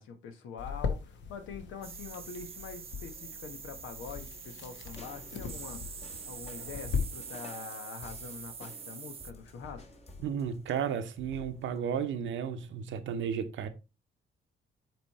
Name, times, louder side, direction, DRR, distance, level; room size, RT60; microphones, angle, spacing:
voice 1, 0.0-9.8, left 6 dB, 85° left, 1.2 m, -45 dB
sound 1, 0.6-7.0, left 5 dB, 65° left, 1.2 m, -39 dB
sound 2, 1.8-9.3, right 7 dB, 30° right, 0.4 m, -45 dB
sound 3, 5.0-11.8, left 2 dB, 30° left, 1.3 m, -52 dB
voice 2, 10.2-13.7, right 7 dB, 75° right, 0.9 m, -33 dB
7.9 x 3.1 x 4.2 m
cardioid pair, 90°, 20 cm